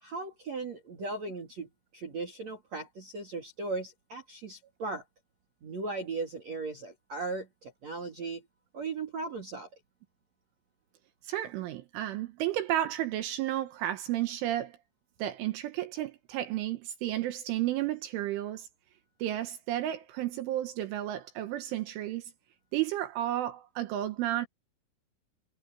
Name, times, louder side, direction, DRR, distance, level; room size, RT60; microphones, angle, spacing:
voice 1, 0.0-5.0 5.6-8.4 8.7-9.7, right 3 dB, 45° right, 2.9 m, -37 dB
voice 2, 11.3-14.8 15.2-18.7 19.2-22.3 22.7-24.5, right 13 dB, 80° right, 3.7 m, -32 dB
omnidirectional pair, 5.7 m